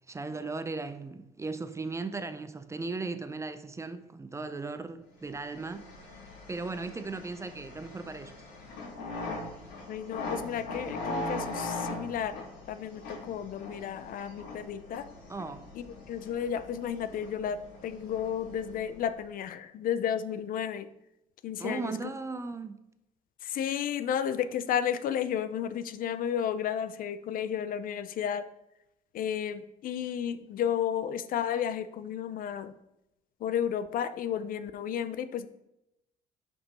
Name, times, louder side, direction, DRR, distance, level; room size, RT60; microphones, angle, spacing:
voice 1, 0.1-6.2 6.5-8.4 15.3-15.6 21.6-22.8, right 3 dB, 15° right, 0.5 m, -37 dB
sound 1, 5.3-19.2, left 2 dB, 85° left, 2.8 m, -41 dB
voice 2, 9.9-12.4 12.7-15.1 15.8-20.9 21.4-22.0 23.4-28.5 29.1-32.7 33.4-35.5, left 9 dB, 55° left, 0.5 m, -32 dB
5.7 x 5.3 x 5.4 m
cardioid pair, 110°, 17 cm